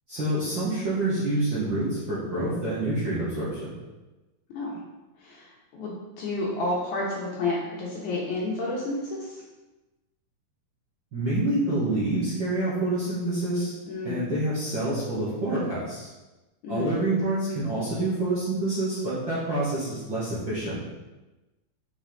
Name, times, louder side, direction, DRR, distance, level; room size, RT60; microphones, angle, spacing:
voice 1, 0.1-3.7 11.1-13.7 14.0-16.1 16.7-20.8, right 2 dB, 40° right, -10 dB, 2.0 m, -27 dB
voice 2, 5.2-9.4 13.9-14.2 16.6-16.9, left 2 dB, 65° left, -5 dB, 2.4 m, -30 dB
7.5 x 5.9 x 4.1 m, 1.1 s
omnidirectional pair, 4.4 m